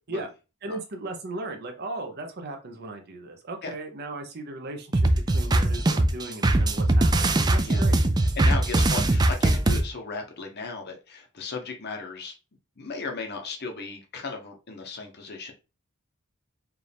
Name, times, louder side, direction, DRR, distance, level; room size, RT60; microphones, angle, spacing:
voice 1, 0.6-8.0, right 2 dB, 50° right, 4 dB, 0.8 m, -37 dB
sound 1, 4.9-9.8, right 1 dB, 20° right, 0.4 m, -21 dB
voice 2, 8.4-12.3 12.8-15.5, left 4 dB, 50° left, 3 dB, 0.9 m, -36 dB
4.5 x 2.5 x 3.4 m, 0.30 s
head